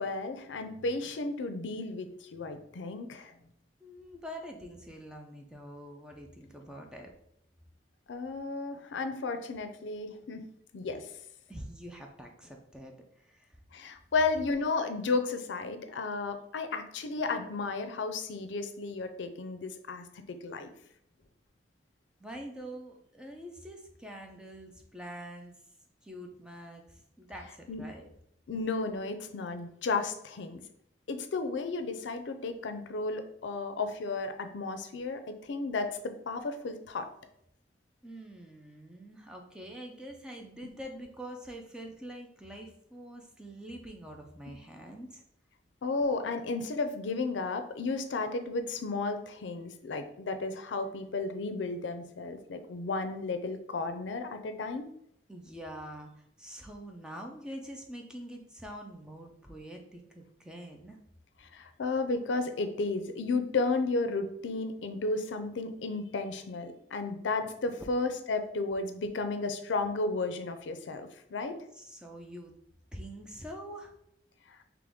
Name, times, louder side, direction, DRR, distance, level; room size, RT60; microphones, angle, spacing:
voice 1, 0.0-3.3 8.1-10.4 10.7-11.0 13.7-20.7 27.7-27.8 28.5-30.6 31.1-37.1 45.8-54.9 61.5-71.6 74.5-74.6, left 3 dB, 80° left, 8 dB, 0.4 m, -33 dB
voice 2, 3.8-7.1 11.5-13.6 22.2-25.6 26.0-28.1 38.0-45.2 55.3-61.0 71.7-72.5 72.9-73.9, equal, 5° right, 2 dB, 0.4 m, -45 dB
3.8 x 2.9 x 3.5 m, 0.74 s
head